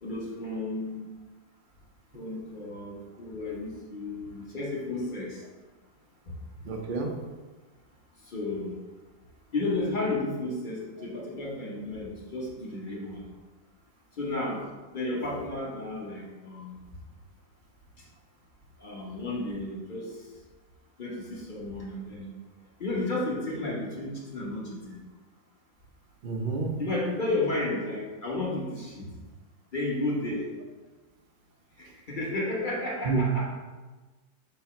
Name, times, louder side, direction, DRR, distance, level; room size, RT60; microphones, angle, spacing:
voice 1, 0.0-1.1 2.1-5.5 6.3-6.4 8.2-8.8 9.5-13.2 14.1-16.8 18.0-18.1 18.8-20.4 21.0-22.4 22.8-25.0 26.8-29.1 29.7-30.5 31.8-33.5, left 2 dB, 35° left, -4 dB, 0.9 m, -33 dB
voice 2, 6.6-7.1 26.2-26.7 33.0-33.2, right 4 dB, 55° right, 1 dB, 0.5 m, -29 dB
6.9 x 2.7 x 5.7 m, 1.2 s
omnidirectional pair, 2.1 m